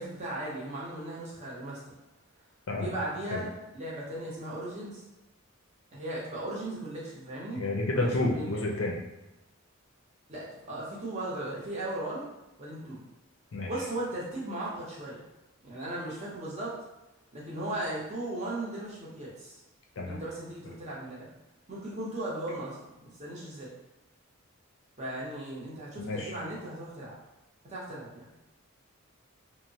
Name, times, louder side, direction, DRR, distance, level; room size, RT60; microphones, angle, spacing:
voice 1, 0.0-1.8 2.7-5.0 5.9-7.6 7.9-8.6 10.3-12.3 12.6-13.0 13.6-15.2 15.6-16.7 17.3-19.6 20.0-21.3 21.7-22.8 23.2-23.7 25.0-27.1 27.6-28.3, right 1 dB, 30° right, -6 dB, 0.7 m, -37 dB
voice 2, 7.6-9.0 13.5-13.7 20.0-20.2 26.0-26.3, left 2 dB, 60° left, -1 dB, 0.5 m, -30 dB
3.0 x 2.0 x 2.7 m, 0.99 s
head